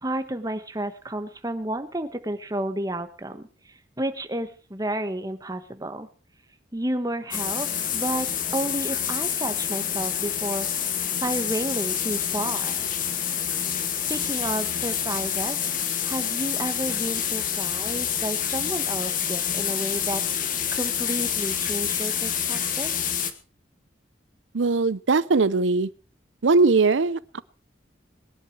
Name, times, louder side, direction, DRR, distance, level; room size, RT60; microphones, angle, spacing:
voice 1, 0.0-3.5 4.0-6.1 6.7-7.7 7.9-10.7 11.2-12.8 14.1-15.6 16.0-20.2 20.7-22.9, right 1 dB, 20° right, 8 dB, 1.4 m, -31 dB
sound 1, 7.3-23.3, left 9 dB, 45° left, 1.4 m, -27 dB
voice 2, 24.5-25.9 26.4-27.4, right 3 dB, 85° right, 19 dB, 0.6 m, -20 dB
20.5 x 11.0 x 4.8 m, 0.37 s
head